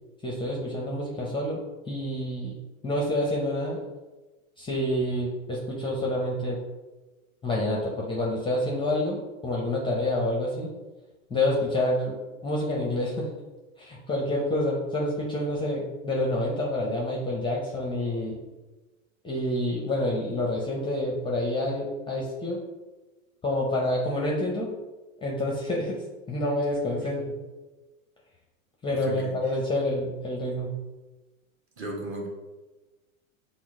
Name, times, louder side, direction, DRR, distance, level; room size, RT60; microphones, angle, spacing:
voice 1, 0.2-1.6 1.9-2.6 2.8-3.8 4.6-6.6 7.4-9.2 9.4-10.7 11.3-12.2 12.4-13.3 13.8-18.4 19.2-22.6 23.4-24.7 25.2-26.0 26.3-27.3 28.8-30.7, left 1 dB, 10° left, -2 dB, 0.6 m, -28 dB
voice 2, 28.9-29.4 31.8-32.3, right 1 dB, 30° right, 0 dB, 1.1 m, -35 dB
6.0 x 2.0 x 3.5 m, 1.2 s
hypercardioid pair, 95°, 41 cm